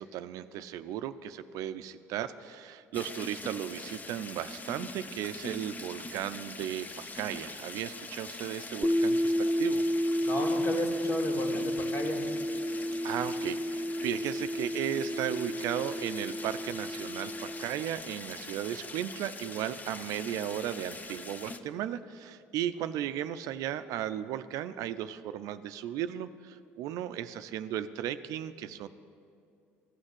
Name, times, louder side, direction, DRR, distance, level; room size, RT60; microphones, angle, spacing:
voice 1, 0.0-6.9 7.1-9.9 13.0-28.9, right 11 dB, 70° right, 12 dB, 0.5 m, -35 dB
sound 1, 2.9-21.6, left 3 dB, 25° left, 0.9 m, -43 dB
sound 2, 8.8-17.7, equal, ahead, 0.3 m, -31 dB
voice 2, 10.2-12.2, left 1 dB, 45° left, 1 dB, 2.5 m, -34 dB
15.0 x 6.4 x 9.8 m, 2.4 s
hypercardioid pair, 65°, 6 cm